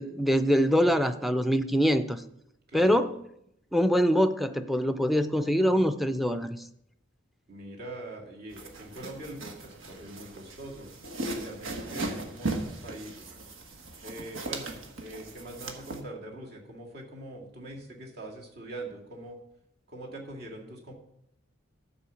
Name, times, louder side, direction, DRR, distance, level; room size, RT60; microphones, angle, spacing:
voice 1, 0.0-2.2 2.7-3.1 3.7-6.6, equal, ahead, 9 dB, 0.5 m, -24 dB
voice 2, 2.7-3.0 7.5-10.9 11.3-13.3 14.0-19.4 19.9-20.9, right 1 dB, 50° right, -1 dB, 2.4 m, -42 dB
sound 1, 8.5-16.0, right 2 dB, 70° right, 1.4 m, -38 dB
13.0 x 4.7 x 7.0 m, 0.78 s
head